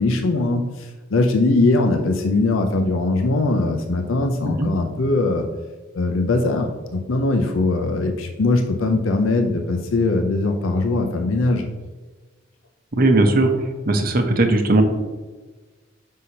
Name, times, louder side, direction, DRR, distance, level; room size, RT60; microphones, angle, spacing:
voice 1, 0.0-5.5 5.9-11.7, left 2 dB, 85° left, 4 dB, 0.6 m, -21 dB
voice 2, 13.0-13.5 13.9-14.8, right 2 dB, 50° right, 5 dB, 0.8 m, -17 dB
6.3 x 5.5 x 2.8 m, 1.3 s
head